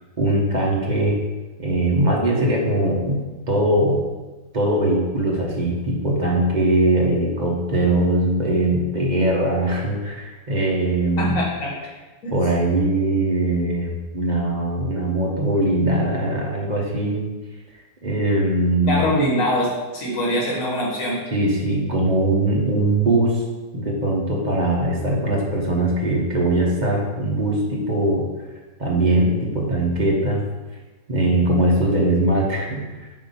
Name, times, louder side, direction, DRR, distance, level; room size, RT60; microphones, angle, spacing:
voice 1, 0.2-1.2 1.6-3.2 3.5-4.0 4.5-11.4 12.3-17.3 18.0-19.0 21.3-23.4 23.7-28.3 28.8-30.4 31.1-33.1, right 1 dB, 30° right, -2 dB, 0.9 m, -21 dB
voice 2, 11.2-11.7 12.2-12.3 18.9-21.2, equal, 50° left, -5 dB, 2.0 m, -23 dB
7.5 x 2.8 x 5.5 m, 1.2 s
omnidirectional pair, 1.8 m